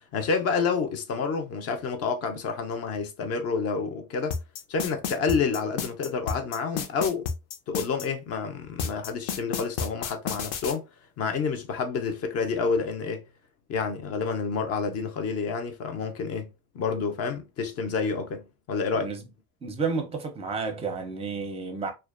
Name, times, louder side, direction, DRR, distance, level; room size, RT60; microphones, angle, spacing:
voice 1, 0.1-4.3 4.7-7.3 7.7-10.8 11.2-13.2 13.7-19.1, left 5 dB, 40° left, 0.5 m, -29 dB
sound 1, 4.3-8.1 8.8-10.7, left 6 dB, 80° left, 0.6 m, -31 dB
voice 2, 19.6-21.9, right 4 dB, 15° right, 0.5 m, -31 dB
2.4 x 2.1 x 2.3 m
supercardioid pair, 115°, 40 cm